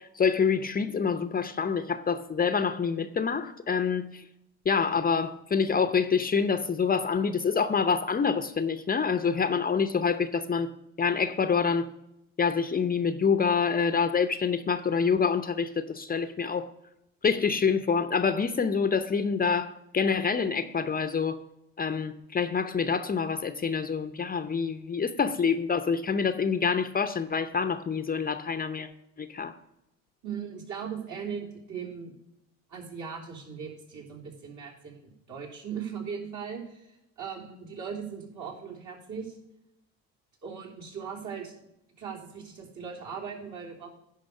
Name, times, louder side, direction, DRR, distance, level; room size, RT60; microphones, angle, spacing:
voice 1, 0.0-4.2 4.7-10.7 11.0-11.9 12.4-16.7 17.2-21.4 21.8-28.9 29.2-29.5, left 6 dB, 25° left, 0.7 m, -26 dB
voice 2, 30.2-32.1 32.7-39.4 40.4-41.5 42.0-44.0, right 6 dB, 55° right, 3.3 m, -39 dB
10.5 x 5.3 x 6.5 m
supercardioid pair, 80°, 35 cm